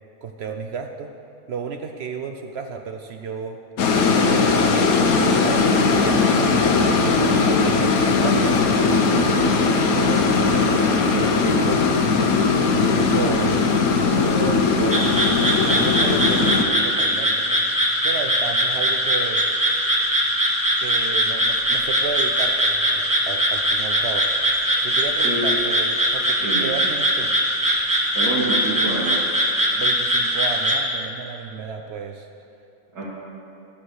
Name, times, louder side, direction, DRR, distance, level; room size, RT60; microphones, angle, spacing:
voice 1, 0.2-1.1 1.5-3.6 4.3-9.3 9.6-11.9 12.7-13.5 14.1-15.0 15.4-17.6 18.0-19.4 20.8-24.3 24.8-27.3 29.8-32.3, right 6 dB, 65° right, 5 dB, 0.6 m, -32 dB
sound 1, 3.8-16.6, left 4 dB, 80° left, 1.2 m, -19 dB
sound 2, 14.9-30.8, equal, 15° right, 1.0 m, -21 dB
voice 2, 28.1-29.4 32.9-33.0, right 2 dB, 80° right, -9 dB, 2.2 m, -27 dB
12.5 x 6.0 x 6.3 m, 2.7 s
omnidirectional pair, 1.5 m